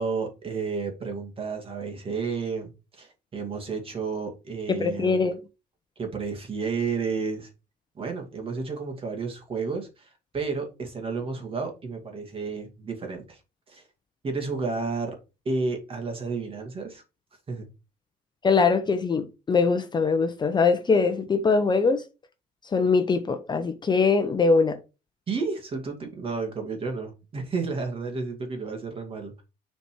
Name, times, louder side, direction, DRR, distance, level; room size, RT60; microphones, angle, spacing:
voice 1, 0.0-5.2 6.0-7.5 8.0-13.4 13.7-13.8 14.2-15.1 15.4-17.0 17.5-17.7 25.3-29.4, right 4 dB, 35° right, 2.4 m, -31 dB
voice 2, 4.7-5.4 18.4-22.0 22.7-24.8, left 4 dB, 25° left, 0.8 m, -22 dB
6.9 x 4.3 x 4.6 m
cardioid pair, 130°, 17 cm